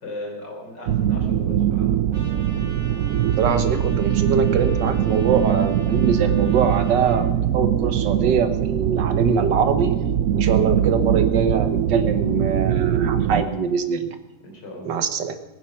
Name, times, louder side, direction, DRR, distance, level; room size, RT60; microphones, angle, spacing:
voice 1, 0.0-2.2 14.4-15.0, left 1 dB, 85° left, 0 dB, 4.3 m, -37 dB
sound 1, 0.9-13.4, right 10 dB, 65° right, 0.9 m, -22 dB
Trumpet, 2.1-7.2, right 1 dB, 30° right, 4.1 m, -43 dB
voice 2, 3.4-9.9 10.3-14.2 14.9-15.4, right 6 dB, 90° right, 9 dB, 1.9 m, -23 dB
21.5 x 9.2 x 6.0 m, 1.0 s
omnidirectional pair, 1.9 m